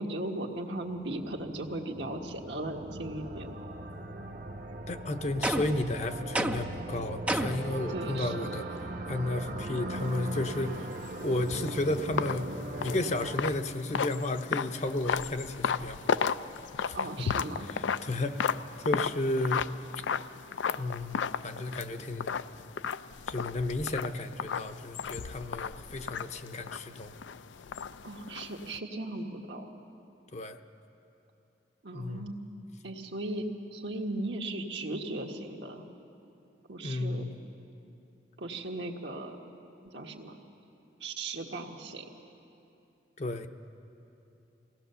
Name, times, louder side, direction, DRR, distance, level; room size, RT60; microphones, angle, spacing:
voice 1, 0.0-3.5 7.9-8.3 16.9-17.7 28.0-29.7 31.8-32.3 32.8-33.4 33.7-35.9 36.7-37.3 38.4-39.4 39.8-40.4 41.0-42.0, right 2 dB, 75° right, 1 dB, 1.6 m, -37 dB
sound 1, 0.6-13.4, right 1 dB, 45° right, 0.9 m, -39 dB
voice 2, 4.9-8.7 9.1-10.9 11.2-12.5 12.8-16.3 16.8-17.2 17.6-19.7 20.8-22.4 23.3-27.1 30.3-30.6 31.9-32.4 36.8-37.4 43.2-43.5, left 2 dB, 40° left, 8 dB, 0.7 m, -33 dB
sound 2, 5.4-5.9 6.3-6.8 7.3-7.7, right 1 dB, 10° right, 0.5 m, -30 dB
sound 3, 10.0-28.8, left 6 dB, 85° left, 0.4 m, -35 dB
23.5 x 18.0 x 6.9 m, 2.8 s
head